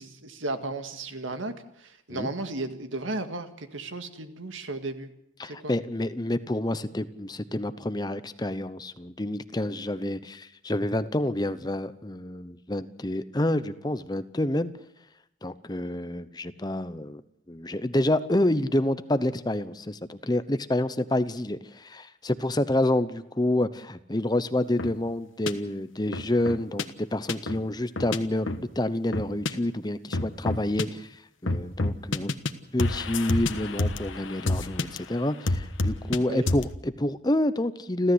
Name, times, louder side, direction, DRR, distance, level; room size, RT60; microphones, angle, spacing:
voice 1, 0.0-5.1 5.6-5.7 36.3-36.5, right 2 dB, 85° right, 8 dB, 2.0 m, -34 dB
voice 2, 5.4-14.7 15.4-17.2 17.5-32.4 32.7-38.1, left 1 dB, 20° left, 12 dB, 0.8 m, -28 dB
sound 1, 24.8-24.9 25.5-25.6 26.1-26.8 27.3-27.6 28.0-28.2 28.5-28.6 29.1-29.5 30.1-30.8 31.5-32.5 32.8-35.0 35.5-36.2 36.5-36.7, left 2 dB, 80° left, 1.4 m, -28 dB
30.0 x 13.0 x 8.0 m, 0.78 s
head